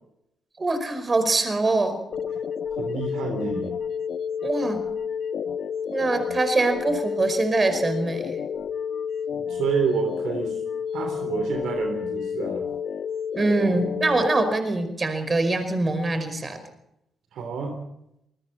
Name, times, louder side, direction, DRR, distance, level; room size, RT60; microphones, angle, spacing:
voice 1, 0.6-2.0 4.4-4.9 5.9-8.4 13.3-16.6, right 2 dB, 30° right, 8 dB, 5.1 m, -23 dB
sound 1, 2.1-14.5, left 7 dB, 55° left, 1.1 m, -30 dB
voice 2, 2.8-3.7 9.3-10.6 10.9-12.7 17.3-17.8, right 6 dB, 60° right, 4 dB, 3.4 m, -29 dB
27.5 x 22.0 x 4.3 m, 0.82 s
figure-of-eight pair, 40°, 0 cm